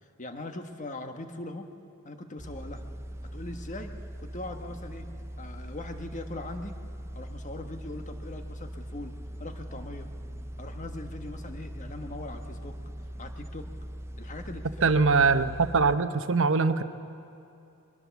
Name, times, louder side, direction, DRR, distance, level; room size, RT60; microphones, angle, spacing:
voice 1, 0.2-1.7 2.0-2.8 3.3-5.1 5.4-6.8 7.1-10.1 10.6-12.7 13.2-13.7 14.2-15.0, left 2 dB, 35° left, 6 dB, 1.4 m, -41 dB
sound 1, 2.4-16.0, equal, 10° right, 0.5 m, -41 dB
voice 2, 14.8-16.8, right 4 dB, 60° right, 10 dB, 0.9 m, -22 dB
23.0 x 21.5 x 7.1 m, 2.7 s
head